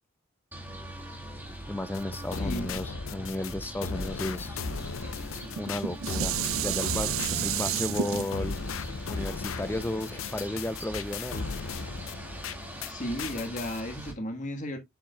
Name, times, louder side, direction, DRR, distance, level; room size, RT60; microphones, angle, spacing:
sound 1, 0.5-14.1, right 1 dB, 10° right, 1.8 m, -42 dB
voice 1, 1.7-4.6 5.6-6.4 6.6-8.5 9.1-11.4, left 1 dB, 10° left, 0.4 m, -34 dB
sound 2, 1.9-12.9 13.2-13.8, left 4 dB, 75° left, 0.6 m, -36 dB
voice 2, 2.4-2.8 12.9-14.8, equal, 35° left, 1.4 m, -34 dB
Dishes pots and pans, 5.4-10.7 11.3-11.4, right 10 dB, 80° right, 0.4 m, -32 dB
7.2 x 7.2 x 2.2 m
head